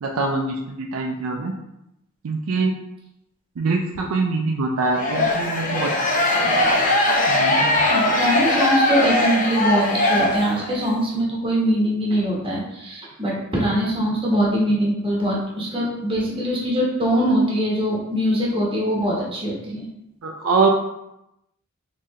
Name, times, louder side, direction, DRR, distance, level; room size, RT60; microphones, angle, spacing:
voice 1, 0.0-1.5 2.2-2.7 3.6-5.9 6.4-6.6 7.3-7.8 20.2-20.7, right 3 dB, 75° right, 1 dB, 0.4 m, -24 dB
sound 1, 4.9-10.9, left 1 dB, 40° left, 0.6 m, -20 dB
voice 2, 7.8-19.8, equal, 25° right, -4 dB, 1.1 m, -22 dB
3.6 x 3.1 x 2.8 m, 0.85 s
head